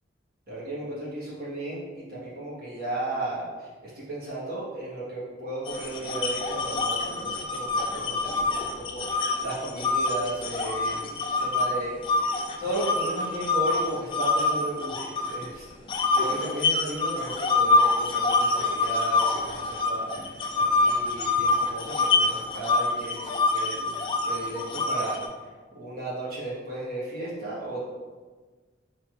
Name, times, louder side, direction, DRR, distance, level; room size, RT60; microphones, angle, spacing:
voice 1, 0.5-15.7 16.1-23.9 24.3-25.2 25.7-27.8, right 1 dB, 50° right, -8 dB, 1.2 m, -35 dB
sound 1, 5.7-11.7 12.0-15.5 15.9-25.3, left 3 dB, 25° left, 0.3 m, -25 dB
3.3 x 2.5 x 4.4 m, 1.4 s
head